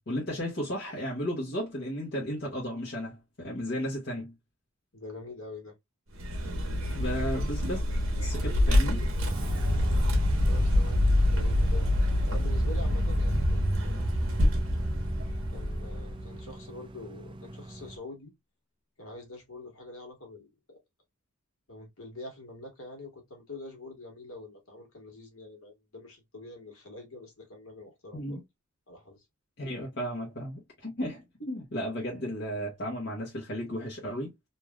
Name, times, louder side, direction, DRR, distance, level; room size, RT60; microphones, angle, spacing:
voice 1, 0.0-4.3 6.9-7.8 8.2-9.0 28.1-28.4 29.6-34.3, equal, 55° left, 1.0 m, -34 dB
voice 2, 4.9-5.7 10.4-11.0 11.3-11.9 12.3-14.1 15.5-18.3 19.0-20.8 21.7-28.4 28.9-29.2, left 2 dB, 70° left, 1.5 m, -45 dB
Vehicle, 6.1-16.5, left 1 dB, 65° right, 1.2 m, -26 dB
sound 1, 9.3-18.0, right 2 dB, 25° right, 0.4 m, -43 dB
sound 2, 13.5-16.3, left 1 dB, 30° left, 0.8 m, -41 dB
3.2 x 2.6 x 2.3 m
head